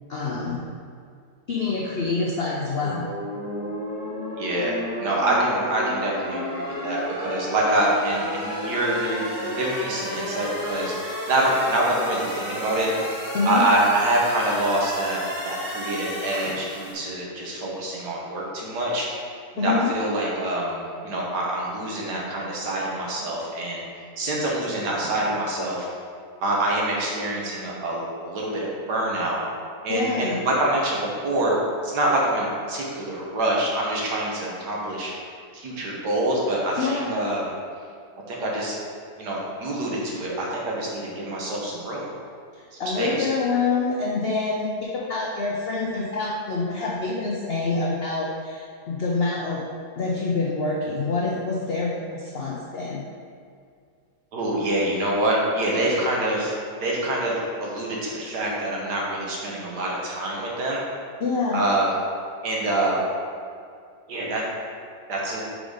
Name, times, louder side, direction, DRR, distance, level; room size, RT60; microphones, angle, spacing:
voice 1, 0.1-0.6 1.5-3.0 13.3-13.6 19.6-19.9 29.9-30.4 36.8-37.1 42.5-49.6 50.0-53.0 61.2-61.6, left 4 dB, 75° left, -4 dB, 0.5 m, -26 dB
sound 1, 2.8-16.9, left 1 dB, 15° left, 1.1 m, -32 dB
voice 2, 4.4-12.9 13.5-19.1 19.6-23.8 24.2-25.9 26.4-29.4 29.8-31.6 31.8-35.1 35.5-37.4 38.3-38.8 39.2-42.1 43.0-43.1 54.3-56.5 56.8-60.8 61.5-61.9 62.4-63.0 64.1-64.4 65.1-65.4, right 1 dB, 70° right, -3 dB, 1.6 m, -25 dB
4.9 x 3.9 x 4.9 m, 2.2 s
omnidirectional pair, 1.8 m